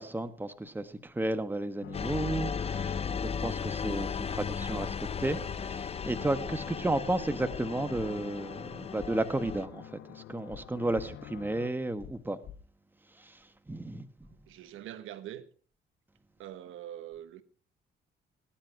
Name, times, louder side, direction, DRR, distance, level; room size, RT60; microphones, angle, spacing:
voice 1, 0.0-12.4 13.2-13.3 13.7-14.1, right 2 dB, 10° right, 1.3 m, -33 dB
sound 1, 1.8-11.7, left 14 dB, 90° left, 0.7 m, -47 dB
sound 2, 1.9-9.7, left 6 dB, 30° left, 0.6 m, -36 dB
sound 3, 6.0-6.1 6.4-6.6 7.5-7.6 7.9-8.1 9.0-9.1 9.4-9.6 10.5-10.6 10.9-11.1 12.0-12.1 12.4-12.6, left 10 dB, 65° left, 1.5 m, -45 dB
voice 2, 14.2-15.4 16.4-17.4, right 11 dB, 85° right, 1.2 m, -44 dB
18.5 x 10.5 x 4.7 m
cardioid pair, 90°, 20 cm